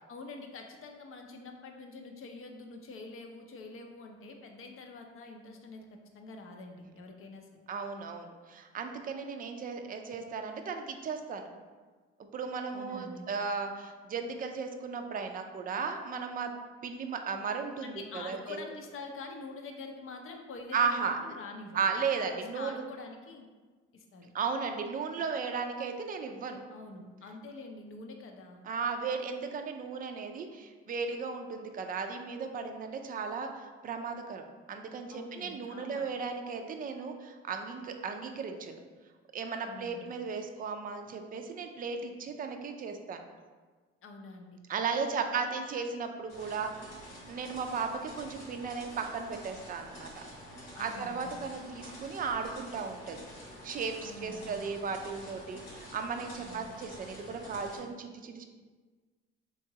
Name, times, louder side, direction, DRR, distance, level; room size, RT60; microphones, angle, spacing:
voice 1, 0.1-5.8 6.1-7.5 12.7-13.3 17.8-21.8 22.3-23.5 23.9-24.3 26.7-28.6 35.1-36.1 39.6-40.2 44.0-44.6 44.9-45.8 50.7-51.6 54.0-54.6 56.4-56.7, left 3 dB, 45° left, 3 dB, 0.6 m, -46 dB
voice 2, 7.7-11.5 12.3-16.5 16.8-18.6 20.7-21.2 21.7-22.8 24.3-26.6 28.6-38.8 39.3-43.2 44.7-46.7 47.2-50.2 50.8-53.2 53.6-58.5, right 5 dB, 30° right, 5 dB, 0.4 m, -35 dB
sound 1, 46.3-57.8, equal, 85° left, 1.3 m, -48 dB
3.4 x 3.0 x 2.8 m, 1.4 s
supercardioid pair, 70°, 29 cm